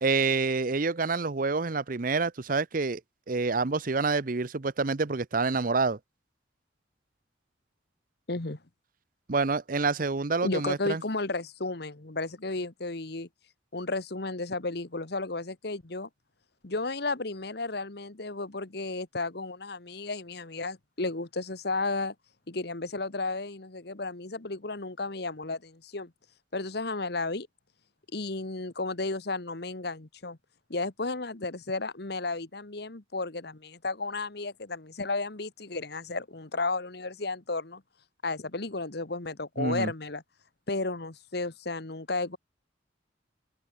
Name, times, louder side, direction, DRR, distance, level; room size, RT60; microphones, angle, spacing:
voice 1, 0.0-3.0 3.3-6.0 9.3-11.0 39.6-39.9, right 4 dB, 45° right, 0.8 m, -27 dB
voice 2, 8.3-8.6 10.4-13.3 13.7-16.1 16.6-22.1 22.5-26.1 26.5-27.5 28.1-30.4 30.7-37.8 38.2-40.2 40.7-42.4, left 3 dB, 60° left, 1.5 m, -33 dB
open air
head